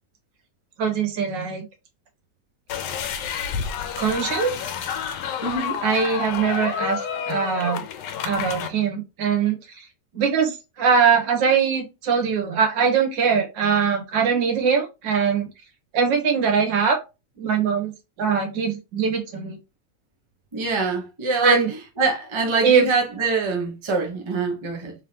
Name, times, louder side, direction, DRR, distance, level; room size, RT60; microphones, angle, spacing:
voice 1, 0.8-1.6 4.0-4.6 5.8-7.8 8.2-9.8 10.1-15.5 15.9-17.0 17.4-17.9 18.2-19.6 21.4-21.7 22.6-22.9, right 6 dB, 85° right, 1.7 m, -22 dB
sound 1, 2.7-8.7, left 8 dB, 80° left, 1.3 m, -29 dB
voice 2, 5.4-5.8 20.5-21.6 22.0-24.9, right 3 dB, 25° right, 0.8 m, -24 dB
3.6 x 3.4 x 2.8 m
omnidirectional pair, 1.9 m